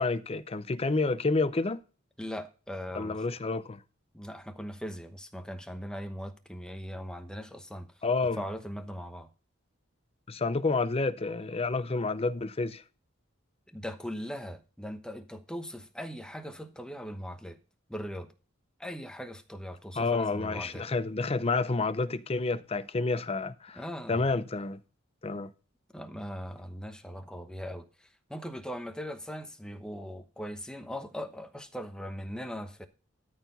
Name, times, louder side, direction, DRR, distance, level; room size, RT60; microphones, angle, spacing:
voice 1, 0.0-1.8 2.9-3.8 8.0-8.4 10.3-12.8 20.0-23.8 24.1-24.8 25.2-25.5, left 3 dB, 30° left, 0.6 m, -29 dB
voice 2, 2.2-3.2 4.1-7.9 8.4-9.3 13.7-17.6 17.9-18.3 18.8-20.9 23.7-24.2 25.9-32.9, equal, 5° left, 1.0 m, -40 dB
13.0 x 4.6 x 5.3 m
head